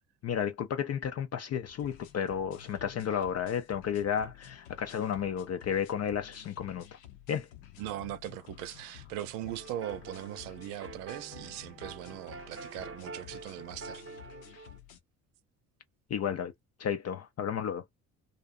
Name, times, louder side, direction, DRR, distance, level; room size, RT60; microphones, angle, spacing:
voice 1, 0.2-6.8 7.3-7.5 16.1-16.5 16.8-17.8, left 8 dB, 35° left, 0.5 m, -32 dB
sound 1, 1.7-15.0, left 11 dB, 75° left, 0.7 m, -52 dB
voice 2, 7.8-14.0, right 13 dB, 70° right, 0.6 m, -40 dB
sound 2, 9.6-14.8, right 4 dB, 30° right, 0.7 m, -47 dB
2.5 x 2.3 x 2.4 m
hypercardioid pair, 50°, 43 cm